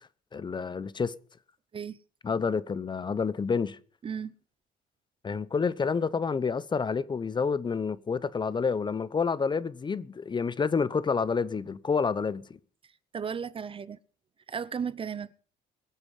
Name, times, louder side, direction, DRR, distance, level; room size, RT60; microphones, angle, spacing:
voice 1, 0.3-1.1 2.2-3.8 5.2-12.6, left 5 dB, 25° left, 0.9 m, -29 dB
voice 2, 4.0-4.3 13.1-14.0 14.5-15.3, right 7 dB, 30° right, 0.7 m, -34 dB
23.0 x 7.9 x 5.6 m
cardioid pair, 110°, 17 cm